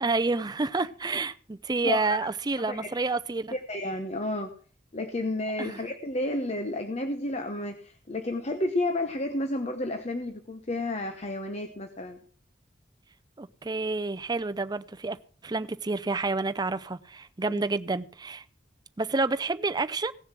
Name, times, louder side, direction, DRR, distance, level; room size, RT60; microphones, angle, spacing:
voice 1, 0.0-3.6 5.6-5.8 13.4-15.2 15.4-18.4 19.0-20.1, right 3 dB, 25° right, 0.5 m, -29 dB
voice 2, 1.8-2.3 2.7-3.1 3.5-4.5 4.9-12.2 17.5-17.6, left 2 dB, 35° left, 1.0 m, -31 dB
17.0 x 7.0 x 6.0 m
head